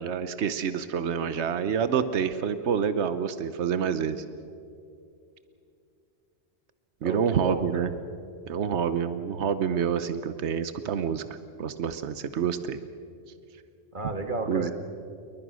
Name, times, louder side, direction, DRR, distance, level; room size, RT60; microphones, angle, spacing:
voice 1, 0.0-4.2 7.0-7.9 8.5-12.8 14.5-14.7, right 7 dB, 85° right, 11 dB, 1.2 m, -28 dB
voice 2, 7.0-7.8 13.9-14.7, right 3 dB, 45° right, 6 dB, 2.1 m, -32 dB
29.0 x 22.5 x 6.3 m, 2.6 s
omnidirectional pair, 1.1 m